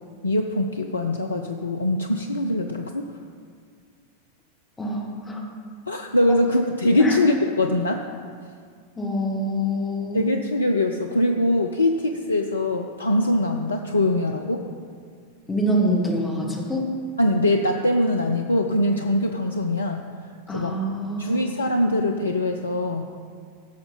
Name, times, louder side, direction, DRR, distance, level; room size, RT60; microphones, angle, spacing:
voice 1, 0.2-3.0 5.9-8.0 10.1-14.6 17.2-20.8 21.2-23.1, left 1 dB, 80° left, 4 dB, 0.5 m, -23 dB
voice 2, 4.8-5.4 7.0-7.2 9.0-10.3 15.5-16.9 20.5-21.5, equal, 15° left, -1 dB, 2.1 m, -25 dB
15.5 x 6.0 x 5.7 m, 2.1 s
figure-of-eight pair, 90°, 0 cm